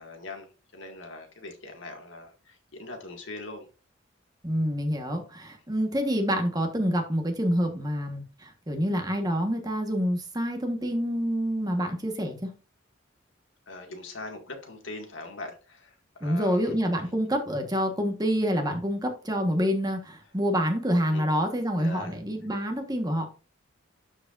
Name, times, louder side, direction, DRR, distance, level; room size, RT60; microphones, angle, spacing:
voice 1, 0.0-3.7 13.7-15.9 16.2-16.7 21.1-21.3 21.8-22.1, left 2 dB, 70° left, 2.1 m, -41 dB
voice 2, 4.4-12.5 16.2-23.3, equal, 20° right, 1.4 m, -27 dB
12.5 x 4.9 x 2.6 m
head